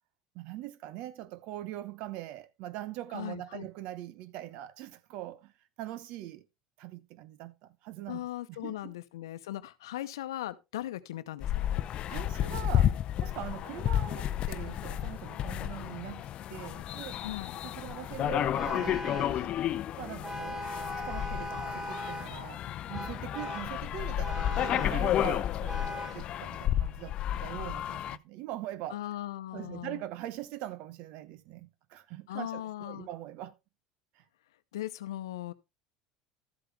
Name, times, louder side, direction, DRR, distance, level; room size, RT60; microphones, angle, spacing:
voice 1, 0.3-5.5 5.8-6.5 6.8-9.0 11.9-17.2 17.6-19.5 20.0-20.7 21.0-29.0 29.5-33.5 34.1-34.2, right 13 dB, 65° right, 1.0 m, -42 dB
voice 2, 3.1-3.7 8.1-11.7 17.2-17.6 28.9-30.0 32.3-33.1 34.7-35.5, left 14 dB, 85° left, 0.8 m, -38 dB
sound 1, 11.4-28.2, left 11 dB, 50° left, 0.5 m, -32 dB
Vehicle horn car horn honking, 18.5-19.4 20.2-22.4 22.9-23.8 24.2-25.1 25.7-26.3, left 1 dB, 20° right, 1.6 m, -39 dB
12.5 x 7.9 x 3.4 m
hypercardioid pair, 80°, 2 cm